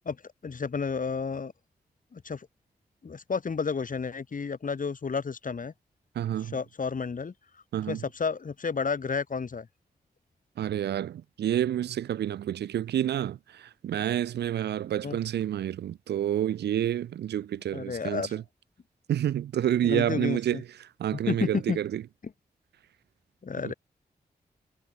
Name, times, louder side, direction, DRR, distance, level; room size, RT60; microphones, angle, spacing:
voice 1, 0.4-1.5 2.1-2.5 3.0-5.7 6.5-7.3 7.9-9.7 15.0-15.2 17.7-18.4 19.8-20.6 21.3-21.8 23.4-23.7, left 5 dB, 55° left, 1.5 m, -31 dB
voice 2, 6.2-6.6 7.7-8.0 10.6-18.4 19.1-22.0 23.6-23.7, right 11 dB, 90° right, 0.6 m, -29 dB
cardioid pair, 45°, 17 cm